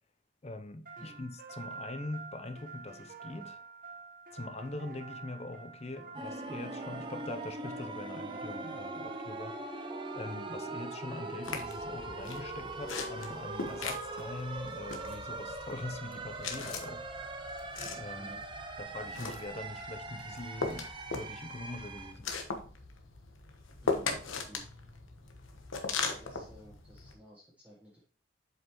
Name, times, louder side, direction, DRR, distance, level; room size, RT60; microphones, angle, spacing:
voice 1, 0.4-3.6 4.3-9.5 10.1-17.0 17.9-18.3 18.8-22.3, left 2 dB, 30° left, 0.6 m, -43 dB
sound 1, 0.9-14.7, right 4 dB, 45° right, 1.1 m, -49 dB
sound 2, 6.1-22.1, right 2 dB, 25° right, 0.6 m, -41 dB
sound 3, 11.4-27.1, left 4 dB, 85° left, 1.1 m, -40 dB
voice 2, 23.8-24.2 24.5-24.6 26.0-28.0, right 1 dB, 5° right, 1.3 m, -54 dB
7.7 x 5.2 x 3.0 m
head